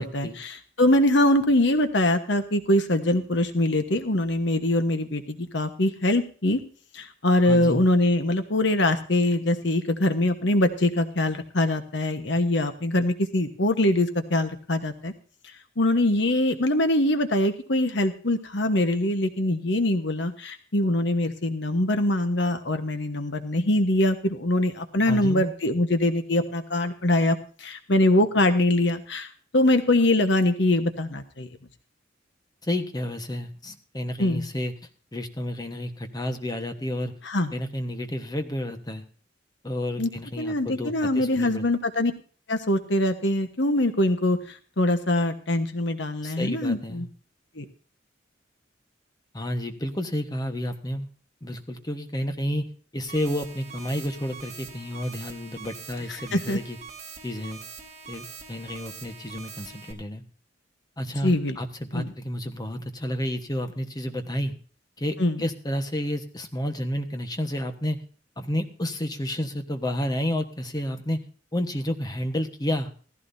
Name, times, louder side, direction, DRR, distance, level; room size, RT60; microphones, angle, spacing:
voice 1, 0.0-6.6 6.9-15.1 15.8-31.5 34.2-34.5 37.2-37.5 40.0-40.1 40.4-42.1 42.5-47.1 47.6-47.7 56.3-56.6 61.2-61.6 61.9-62.1 65.2-65.4, left 1 dB, 65° left, 8 dB, 1.2 m, -23 dB
voice 2, 7.4-7.8 25.1-25.5 32.6-34.7 35.1-37.1 37.5-39.0 39.6-41.7 46.2-47.1 49.3-51.1 51.4-52.6 52.9-56.8 57.2-57.6 58.1-60.2 61.0-64.5 65.0-68.0 68.4-71.2 71.5-72.9, left 1 dB, 20° left, 7 dB, 1.3 m, -30 dB
sound 1, 53.1-59.9, right 5 dB, 35° right, 2.8 m, -43 dB
16.0 x 15.0 x 2.7 m, 0.42 s
head